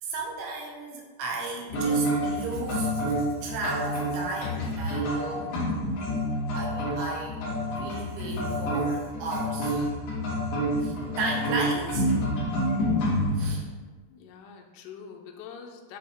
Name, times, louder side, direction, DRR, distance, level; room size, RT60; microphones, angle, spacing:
voice 1, 0.0-2.9 3.4-5.6 6.5-7.4 7.7-9.9 10.8-12.1 13.4-13.7, right 3 dB, 85° right, -1 dB, 3.2 m, -34 dB
sound 1, 1.7-13.5, equal, 60° left, 2.9 m, -28 dB
voice 2, 11.0-11.4 14.1-16.0, left 6 dB, 85° left, 2 dB, 2.6 m, -45 dB
8.1 x 2.7 x 4.3 m, 1.4 s
omnidirectional pair, 4.8 m